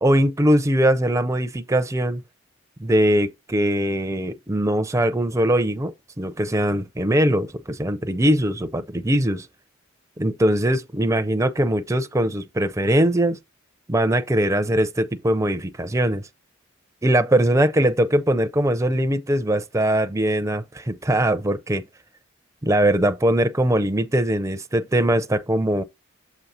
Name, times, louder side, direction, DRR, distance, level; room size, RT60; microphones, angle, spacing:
voice 1, 0.0-2.2 2.8-9.5 10.2-13.4 13.9-16.2 17.0-21.8 22.6-25.8, right 1 dB, 15° right, 0.5 m, -21 dB
7.1 x 3.1 x 5.5 m
head